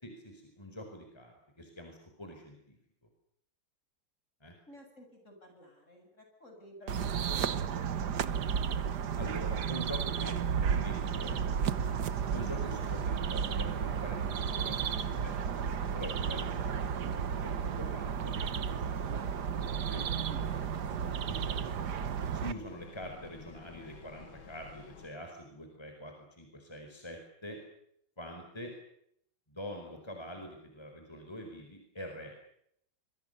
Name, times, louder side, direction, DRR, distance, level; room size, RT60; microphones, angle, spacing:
voice 1, 0.0-2.8 4.4-4.5 9.1-12.0 12.3-19.4 19.9-20.0 21.3-21.6 22.3-27.6 28.2-28.7 29.5-32.3, equal, 10° left, 4 dB, 4.9 m, -45 dB
voice 2, 4.7-8.3 20.3-21.0, left 1 dB, 35° left, 4 dB, 8.1 m, -54 dB
sound 1, 6.9-22.5, right 7 dB, 60° right, 1.7 m, -33 dB
Train, 11.2-25.1, left 5 dB, 80° left, 2.8 m, -50 dB
26.0 x 24.5 x 6.8 m, 0.71 s
omnidirectional pair, 2.1 m